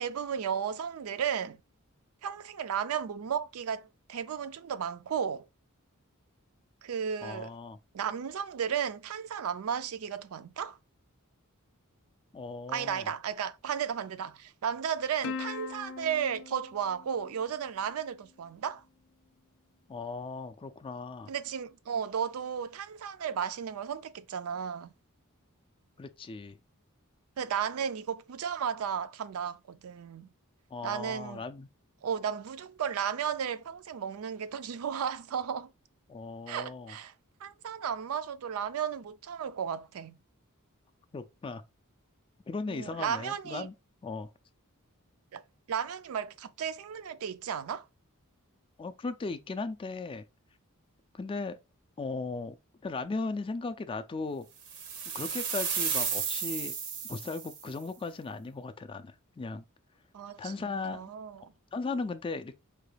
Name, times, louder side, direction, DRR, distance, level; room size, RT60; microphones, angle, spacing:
voice 1, 0.0-1.6 2.2-5.4 6.8-7.5 7.9-10.8 12.7-18.8 21.3-24.9 27.4-30.3 30.8-31.4 32.0-35.7 36.5-37.1 37.4-40.2 42.7-43.7 45.3-45.4 45.7-47.9 60.1-60.5 60.9-61.5, right 7 dB, 70° right, 0.4 m, -34 dB
voice 2, 7.2-7.8 12.3-13.1 19.9-21.3 26.0-26.6 30.7-31.7 36.1-36.9 41.1-41.6 42.5-43.7 44.0-44.3 48.8-50.2 51.1-51.6 52.0-52.6 52.8-54.5 55.1-56.8 57.1-59.6 60.4-61.1 61.7-62.6, left 3 dB, 25° left, 0.3 m, -37 dB
Plucked string instrument, 15.2-18.0, left 5 dB, 85° left, 0.5 m, -41 dB
sound 1, 54.7-57.7, right 6 dB, 85° right, 0.8 m, -33 dB
4.6 x 2.3 x 3.2 m
head